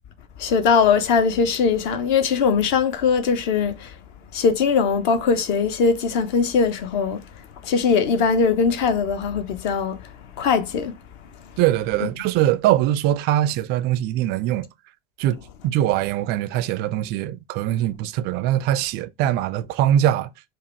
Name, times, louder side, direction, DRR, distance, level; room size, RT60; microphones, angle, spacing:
voice 1, 0.4-3.9 4.3-7.2 7.6-11.0 12.0-12.1, left 5 dB, 50° left, 0.8 m, -21 dB
voice 2, 11.6-14.7 15.2-20.3, right 12 dB, 35° right, 0.4 m, -22 dB
4.7 x 2.3 x 4.3 m
figure-of-eight pair, 75°, 31 cm